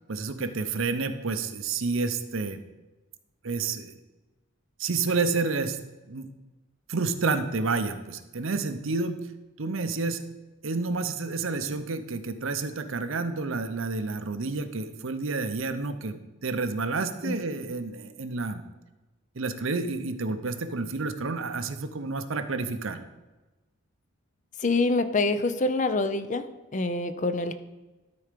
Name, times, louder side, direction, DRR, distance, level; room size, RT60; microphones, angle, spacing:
voice 1, 0.1-2.6 3.4-4.0 4.8-5.8 6.1-6.3 6.9-9.2 9.6-10.2 10.6-18.6 19.4-23.0, right 4 dB, 65° right, 9 dB, 0.7 m, -29 dB
voice 2, 24.6-26.4 26.7-27.5, left 3 dB, 35° left, 11 dB, 0.5 m, -25 dB
12.5 x 4.3 x 5.1 m, 1.1 s
head